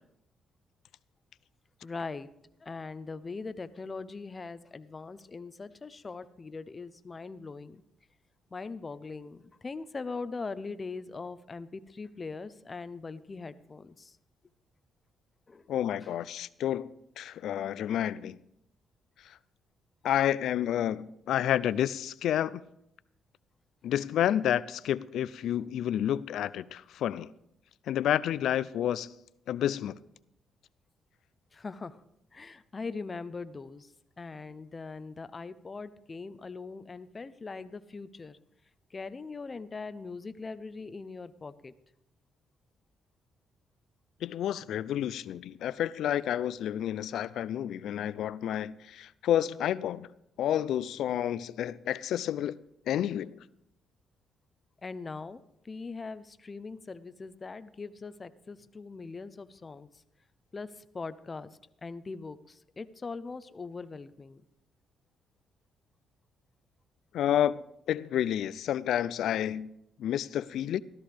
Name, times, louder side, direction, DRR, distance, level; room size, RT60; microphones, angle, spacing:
voice 1, 1.8-2.3 2.6-7.8 8.5-14.2 15.5-15.7 16.0-16.1 31.5-32.0 32.3-38.4 38.9-41.7 54.8-59.9 60.5-61.5 61.8-64.4, left 4 dB, 30° left, 0.6 m, -41 dB
voice 2, 15.7-18.4 20.0-22.6 23.8-27.3 27.9-29.1 29.5-30.0 44.2-50.1 50.4-52.6 52.9-53.4 67.1-67.6 67.9-69.7 70.0-70.8, left 11 dB, 75° left, 0.4 m, -30 dB
14.0 x 13.0 x 3.4 m
cardioid pair, 90°, 0 cm